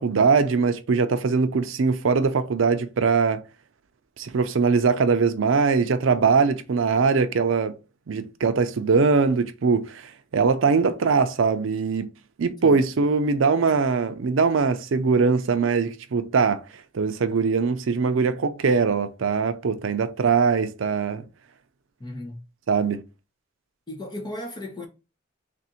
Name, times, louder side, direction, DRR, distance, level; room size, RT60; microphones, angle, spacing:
voice 1, 0.0-3.4 4.2-7.7 8.1-12.1 12.4-16.6 16.9-21.2 22.7-23.0, right 5 dB, 85° right, 0.5 m, -21 dB
voice 2, 22.0-22.4 23.9-24.9, left 1 dB, 25° left, 0.9 m, -35 dB
3.4 x 2.6 x 4.2 m
head